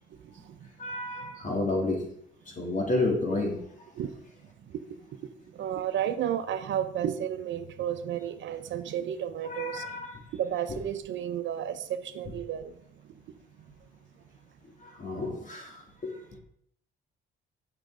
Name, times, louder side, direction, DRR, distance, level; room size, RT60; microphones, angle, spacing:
voice 1, 0.2-0.7 1.2-1.3 4.0-4.1 4.7-10.0 10.3-12.7 13.0-13.1, right 10 dB, 70° right, 10 dB, 0.8 m, -33 dB
voice 2, 0.8-2.1 2.5-3.6 9.4-10.2 14.8-16.2, left 2 dB, 40° left, 0 dB, 3.0 m, -31 dB
8.8 x 6.5 x 5.0 m, 0.69 s
cardioid pair, 90°, 20 cm